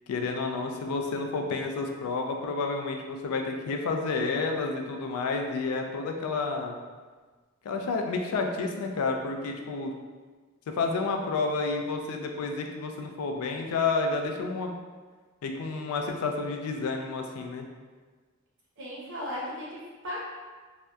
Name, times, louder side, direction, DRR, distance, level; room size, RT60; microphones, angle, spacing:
voice 1, 0.1-6.7 7.6-9.9 10.7-14.7 15.4-17.7, left 4 dB, 90° left, 3 dB, 0.3 m, -30 dB
voice 2, 18.8-20.2, left 1 dB, 60° right, -5 dB, 0.7 m, -36 dB
2.7 x 2.1 x 2.2 m, 1.4 s
head